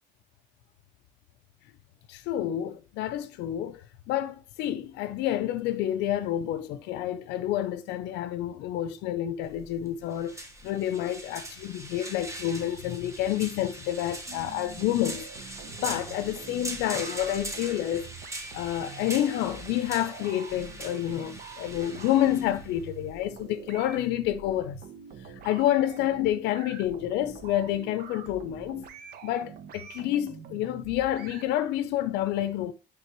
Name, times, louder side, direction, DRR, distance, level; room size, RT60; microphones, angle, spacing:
voice 1, 2.1-18.1 18.5-24.8 25.2-28.8 29.2-32.7, left 12 dB, 90° left, 0.5 m, -29 dB
sound 1, 9.4-24.1, right 1 dB, 15° right, 1.3 m, -41 dB
sound 2, 14.3-31.4, right 7 dB, 65° right, 0.9 m, -46 dB
9.9 x 3.4 x 3.0 m
cardioid pair, 110°, 17 cm